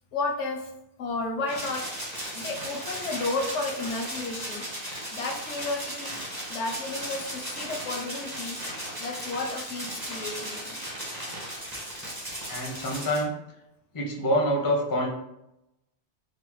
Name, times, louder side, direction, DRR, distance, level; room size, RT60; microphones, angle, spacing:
voice 1, 0.1-0.7 1.0-4.7 5.1-6.1 6.5-10.8, left 3 dB, 85° left, 2 dB, 0.9 m, -33 dB
sound 1, 1.5-13.2, equal, 20° right, 0.8 m, -36 dB
voice 2, 12.5-13.3 13.9-15.1, equal, 25° left, -1 dB, 0.4 m, -26 dB
3.3 x 2.1 x 3.0 m, 0.85 s
omnidirectional pair, 1.2 m